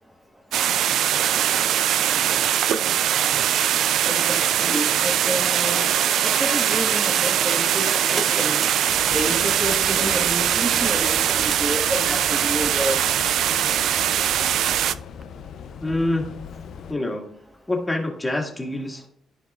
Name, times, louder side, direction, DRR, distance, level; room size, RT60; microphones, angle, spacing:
sound 1, 0.5-14.9, right 10 dB, 75° right, 0.3 m, -21 dB
voice 1, 4.1-5.8 6.4-8.6 9.1-13.0, equal, 15° right, 0 dB, 1.2 m, -29 dB
sound 2, 5.3-14.0 15.2-15.3, right 3 dB, 35° right, 0.8 m, -36 dB
sound 3, 8.9-16.9, left 7 dB, 70° left, 0.5 m, -40 dB
voice 2, 15.8-16.6 16.9-17.3 17.7-19.1, left 1 dB, 15° left, 1 dB, 1.9 m, -26 dB
14.0 x 4.7 x 2.4 m, 0.70 s
cardioid pair, 90°, 0 cm